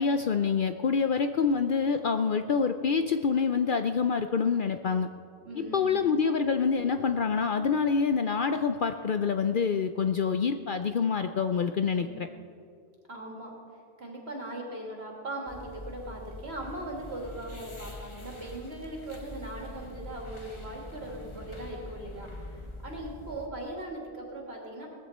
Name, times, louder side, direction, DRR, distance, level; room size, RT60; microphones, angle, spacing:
voice 1, 0.0-5.1 5.6-12.3, left 5 dB, 55° left, 8 dB, 0.7 m, -26 dB
voice 2, 5.4-6.0 12.0-12.3 13.1-13.5 14.0-24.9, right 1 dB, 65° right, -1 dB, 2.8 m, -40 dB
sound 1, 15.5-23.5, left 1 dB, 25° left, 1.4 m, -44 dB
18.0 x 14.5 x 4.3 m, 2.3 s
omnidirectional pair, 1.2 m